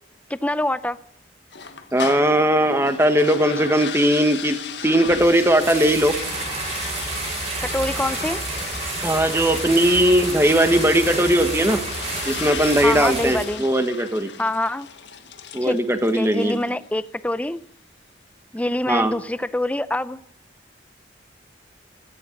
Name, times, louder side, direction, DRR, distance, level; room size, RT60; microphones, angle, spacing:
voice 1, 0.3-1.0 7.6-8.4 12.8-13.6 14.4-14.9 15.6-15.8 16.1-17.6 18.5-20.2, left 1 dB, 10° left, 14 dB, 0.5 m, -25 dB
sound 1, 1.5-16.8, left 7 dB, 75° left, 1.5 m, -35 dB
voice 2, 1.9-4.6 4.8-6.1 9.0-11.8 12.2-14.3 15.5-16.6 18.9-19.1, right 1 dB, 15° right, 8 dB, 1.5 m, -19 dB
sound 2, 5.1-13.4, right 3 dB, 35° right, 7.3 m, -30 dB
17.0 x 14.0 x 5.3 m, 0.79 s
head